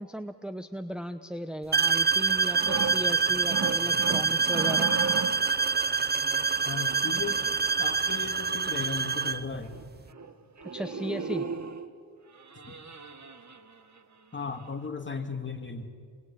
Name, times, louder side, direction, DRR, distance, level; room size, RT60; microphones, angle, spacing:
voice 1, 0.0-4.9 10.7-11.5, equal, ahead, 8 dB, 0.9 m, -36 dB
sound 1, 1.7-9.5, right 5 dB, 25° right, 0.6 m, -26 dB
sound 2, 2.3-5.6 6.6-7.7 8.9-9.0 9.2-9.3 9.6-9.9 10.1-10.3 10.6-11.9 12.4-14.0 14.4-14.6, right 4 dB, 45° right, 1.8 m, -36 dB
voice 2, 6.6-7.4 7.8-9.8 12.6-12.8 14.3-15.9, left 4 dB, 30° left, 5 dB, 2.5 m, -36 dB
30.0 x 21.5 x 8.8 m, 2.2 s
cardioid pair, 80°, 41 cm